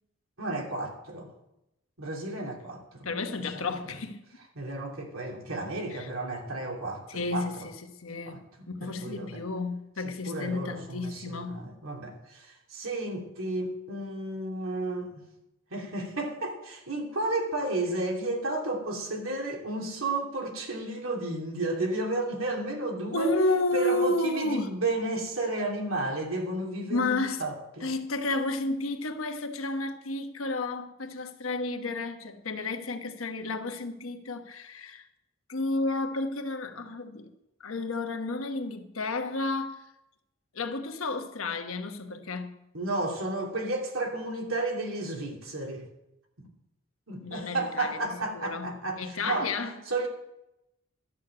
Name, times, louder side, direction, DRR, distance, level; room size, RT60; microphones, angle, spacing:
voice 1, 0.4-1.3 2.0-3.1 3.5-3.7 4.6-7.7 8.3-8.4 8.8-9.4 10.0-15.2 15.7-23.3 23.7-27.9 42.7-45.8 46.4-46.5 47.1-49.5 49.9-50.1, right 2 dB, 90° right, 2.8 m, -32 dB
voice 2, 3.0-4.2 5.9-6.1 7.1-7.7 8.0-11.6 23.1-24.7 26.9-27.4 27.8-35.1 35.5-37.3 37.6-39.8 40.5-42.5 47.2-49.8, left 2 dB, 85° left, 1.2 m, -31 dB
12.0 x 6.9 x 8.7 m
head